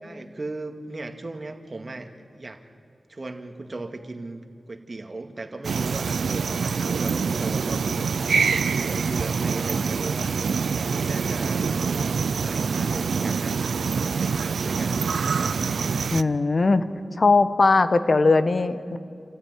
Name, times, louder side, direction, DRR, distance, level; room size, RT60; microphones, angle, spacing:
voice 1, 0.0-2.6 3.1-8.1 8.5-10.4 10.7-12.1 12.4-13.6 13.9-15.0, right 2 dB, 40° right, 5 dB, 2.1 m, -37 dB
sound 1, 5.6-16.2, right 5 dB, 85° right, 0.5 m, -25 dB
voice 2, 16.1-16.8 17.2-19.0, left 3 dB, 50° left, 12 dB, 1.1 m, -19 dB
28.0 x 15.0 x 9.7 m, 2.5 s
wide cardioid pair, 70°, 0 cm